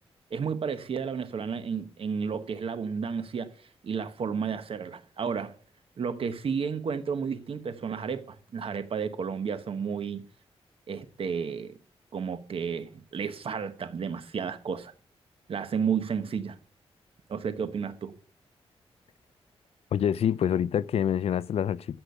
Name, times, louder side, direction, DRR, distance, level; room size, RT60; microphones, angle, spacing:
voice 1, 0.3-3.5 3.8-5.6 6.0-10.2 10.9-11.7 12.1-14.9 15.5-16.6 17.3-18.1, right 6 dB, 60° right, 1.2 m, -32 dB
voice 2, 19.9-22.0, left 9 dB, 70° left, 0.5 m, -26 dB
13.5 x 6.2 x 6.8 m
cardioid pair, 105°, 11 cm